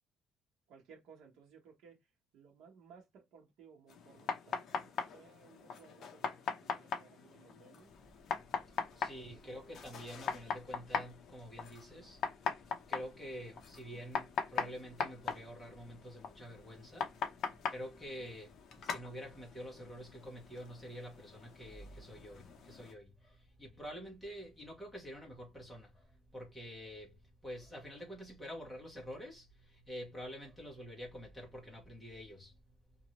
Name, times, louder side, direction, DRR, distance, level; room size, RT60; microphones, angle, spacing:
voice 1, 0.7-2.0 2.3-7.9 8.7-8.8 9.2-9.5, right 6 dB, 65° right, 1.0 m, -60 dB
sound 1, 3.9-22.9, left 5 dB, 45° left, 0.6 m, -41 dB
voice 2, 8.6-12.2 12.5-17.1 17.7-32.6, equal, 5° left, 1.1 m, -48 dB
2.8 x 2.6 x 2.9 m
cardioid pair, 170°, 0 cm